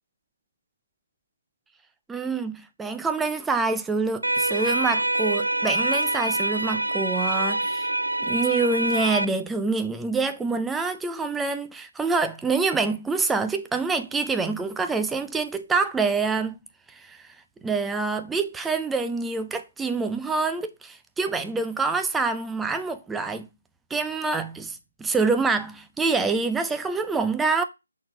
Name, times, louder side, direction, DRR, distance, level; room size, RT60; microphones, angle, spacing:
voice 1, 2.1-7.9 8.2-16.5 16.9-17.3 17.6-23.5 23.9-27.6, right 4 dB, 5° right, 0.4 m, -26 dB
sound 1, 4.2-9.2, right 2 dB, 90° right, 0.4 m, -25 dB
5.9 x 4.1 x 4.4 m
figure-of-eight pair, 155°, 0 cm